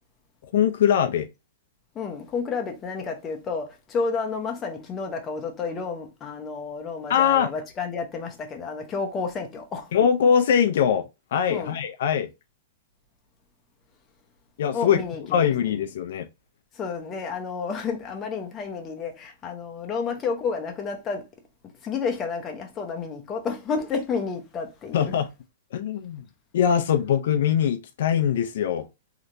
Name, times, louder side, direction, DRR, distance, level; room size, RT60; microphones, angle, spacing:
voice 1, 0.5-1.3 7.1-7.5 9.9-12.3 14.6-15.0 15.3-16.3 24.9-25.3 25.7-26.2 26.5-28.9, left 8 dB, 65° left, 0.4 m, -22 dB
voice 2, 1.9-9.9 11.5-11.8 14.7-15.4 16.7-21.3 21.8-25.1, left 5 dB, 20° left, 0.7 m, -31 dB
3.2 x 2.8 x 2.6 m
hypercardioid pair, 160°, 0 cm